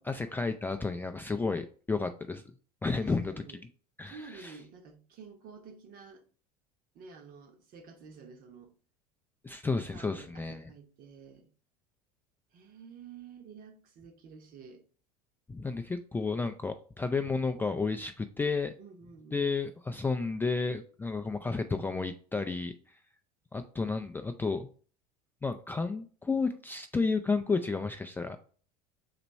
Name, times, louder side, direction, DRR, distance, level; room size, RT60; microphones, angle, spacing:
voice 1, 0.0-2.4 2.8-3.3 4.0-4.5 9.4-10.7 15.5-18.7 19.3-22.7 23.5-24.7 25.4-28.4, left 4 dB, 10° left, 0.3 m, -32 dB
voice 2, 3.0-3.6 4.0-6.2 6.9-8.7 9.9-11.5 12.5-14.8 18.8-19.5, right 5 dB, 45° right, 1.0 m, -50 dB
4.1 x 3.0 x 4.4 m
hypercardioid pair, 80°, 20 cm